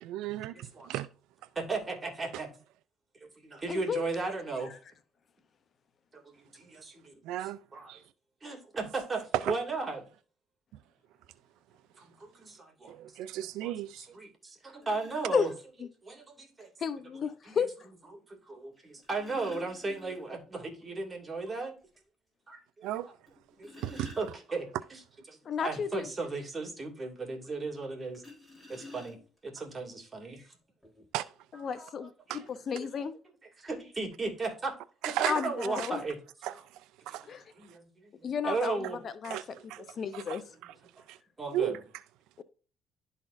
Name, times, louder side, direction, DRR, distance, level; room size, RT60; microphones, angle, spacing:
voice 1, 0.0-1.1 7.2-7.6 7.9-8.0 9.3-9.5 12.9-14.1 22.8-23.1 23.8-24.1 31.1-31.3 32.3-32.4 35.0-35.4 35.8-35.9 36.4-37.3 39.2-39.8 40.1-40.7 41.1-41.2 41.5-41.8, right 13 dB, 85° right, 0.3 m, -35 dB
voice 2, 0.5-0.9 1.5-2.5 3.1-4.8 6.1-8.0 8.4-10.1 12.0-13.2 13.6-15.5 16.0-16.7 17.5-17.6 18.1-21.7 22.5-23.1 23.6-25.0 25.3-28.2 28.7-29.2 29.4-30.6 31.7-32.0 32.3-32.5 32.7-33.0 33.6-34.7 35.0-36.2 36.5-36.6 37.2-39.0 39.3-39.9 40.3-40.4 40.6-40.7 41.4-41.8, right 3 dB, 30° right, 2.4 m, -36 dB
voice 3, 3.7-4.0 15.3-15.5 16.8-17.7 25.5-26.1 31.6-33.1 35.3-36.0 37.3-37.4 38.2-38.8 39.0-39.4 40.0-40.4 42.4-42.5, left 7 dB, 50° left, 0.7 m, -32 dB
sound 1, 14.1-14.2 14.8-15.5 16.9-17.0 18.8-20.5 20.8-20.9 21.3-21.4 21.9-22.0 23.3-24.8 28.1-29.5 30.4-30.5 30.8-31.0, left 2 dB, 5° left, 3.7 m, -50 dB
12.0 x 4.1 x 2.6 m
cardioid pair, 85°, 0 cm